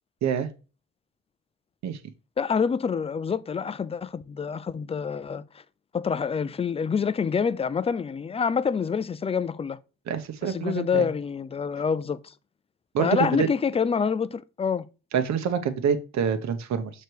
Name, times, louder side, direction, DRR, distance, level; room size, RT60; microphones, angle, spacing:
voice 1, 2.4-5.6 5.9-9.8 10.4-12.3 13.0-14.9, left 6 dB, 20° left, 0.4 m, -27 dB
voice 2, 10.1-11.0 12.9-13.5 15.1-16.9, right 7 dB, 65° right, 1.0 m, -26 dB
6.5 x 3.2 x 4.6 m
cardioid pair, 90°, 30 cm